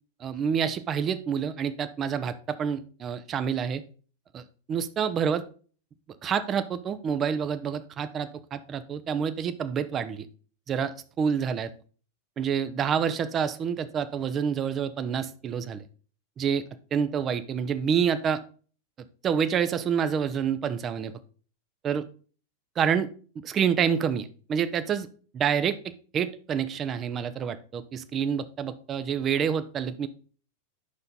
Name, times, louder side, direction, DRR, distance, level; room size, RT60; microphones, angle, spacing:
voice 1, 0.2-3.8 4.3-4.4 4.7-5.4 6.2-10.3 10.7-11.7 12.4-15.8 16.4-16.6 16.9-18.4 19.2-21.1 21.8-22.0 22.8-23.1 23.4-25.1 25.3-25.8 26.1-30.1, right 7 dB, 25° right, 11 dB, 0.8 m, -27 dB
9.6 x 6.6 x 4.0 m, 0.39 s
figure-of-eight pair, 90°, 0 cm